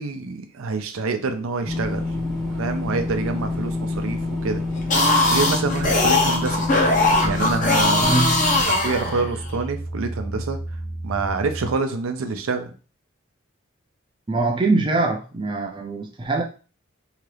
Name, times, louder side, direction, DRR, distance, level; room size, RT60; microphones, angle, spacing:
voice 1, 0.0-2.1 2.6-4.6 5.2-6.6 7.2-8.2 8.7-10.6 11.0-12.7, right 4 dB, 85° right, 0.5 m, -26 dB
sound 1, 1.7-8.6, left 2 dB, ahead, 0.7 m, -27 dB
sound 2, 4.8-9.5, left 2 dB, 40° left, 0.6 m, -20 dB
sound 3, 7.0-11.7, right 1 dB, 55° right, 0.8 m, -37 dB
voice 2, 8.0-8.4 14.3-16.4, right 2 dB, 25° right, 0.4 m, -23 dB
2.8 x 2.4 x 3.2 m
head